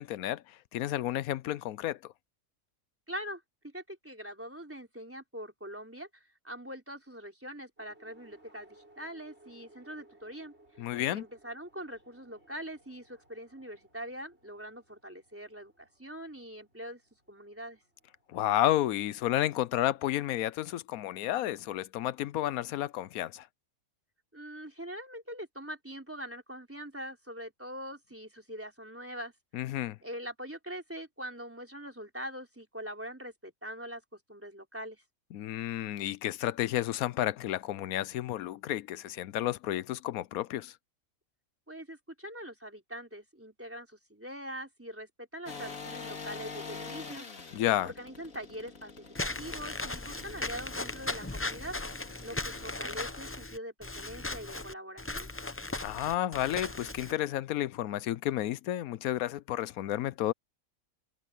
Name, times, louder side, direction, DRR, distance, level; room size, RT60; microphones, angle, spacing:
voice 1, 0.0-2.1 10.8-11.3 18.3-23.5 29.5-30.0 35.3-40.7 47.5-47.9 55.8-60.3, left 13 dB, 85° left, 1.1 m, -31 dB
voice 2, 3.1-10.5 11.1-17.0 17.3-17.8 24.3-29.3 30.0-35.0 41.7-47.3 47.8-51.8 52.2-55.3, equal, 10° right, 3.8 m, -43 dB
sound 1, 7.8-20.0, right 1 dB, 50° right, 5.9 m, -63 dB
sound 2, 45.5-53.1, left 4 dB, 70° left, 2.8 m, -46 dB
Walk footsteps / Squeak, 49.1-57.1, left 2 dB, 20° left, 0.3 m, -37 dB
omnidirectional pair, 1.5 m